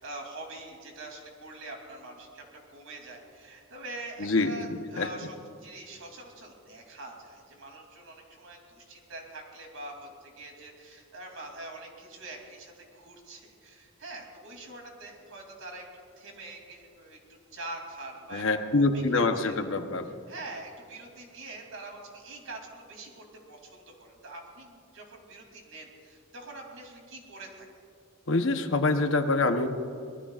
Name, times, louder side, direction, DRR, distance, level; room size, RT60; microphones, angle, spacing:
voice 1, 0.0-15.8 16.2-18.4 18.7-18.8 19.1-19.5 20.3-27.7, right 2 dB, 70° right, 1 dB, 2.9 m, -44 dB
voice 2, 4.2-5.1 18.3-20.1 28.3-29.7, left 3 dB, 60° left, 6 dB, 0.9 m, -26 dB
24.0 x 19.0 x 2.5 m, 2.3 s
head